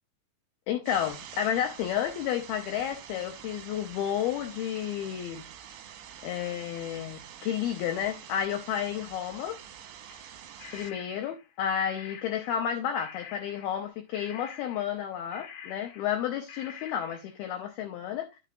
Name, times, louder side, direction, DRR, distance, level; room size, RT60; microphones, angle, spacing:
voice 1, 0.7-5.4 6.2-9.6 10.7-18.3, left 9 dB, 85° left, 2.2 m, -31 dB
sound 1, 0.8-10.9, right 9 dB, 75° right, 2.8 m, -47 dB
sound 2, 10.1-12.7 13.0-16.2 16.5-17.4, left 8 dB, 60° left, 2.4 m, -47 dB
12.0 x 6.3 x 2.4 m
omnidirectional pair, 5.7 m